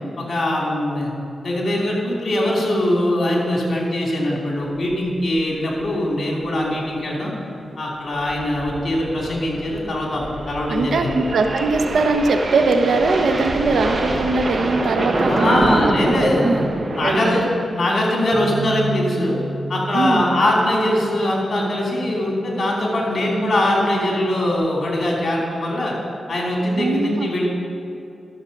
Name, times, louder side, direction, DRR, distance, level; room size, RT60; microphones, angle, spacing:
voice 1, 0.2-1.1 1.4-7.3 7.8-11.1 15.3-16.6 16.9-17.4 17.7-19.4 19.7-25.9 26.3-27.5, left 1 dB, 55° left, -2 dB, 2.9 m, -21 dB
sound 1, 4.9-5.1 5.4-5.5 5.8-5.9 6.4-6.7 8.0-17.3, right 2 dB, 50° right, 1.0 m, -26 dB
voice 2, 10.7-15.9 16.2-16.5 17.0-17.5 19.9-20.3 26.8-27.3, right 3 dB, 80° right, 6 dB, 0.8 m, -21 dB
Bass guitar, 18.3-22.7 23.4-24.6, right 2 dB, 25° right, 1.9 m, -33 dB
12.0 x 6.9 x 5.4 m, 2.6 s
cardioid pair, 60°, 0 cm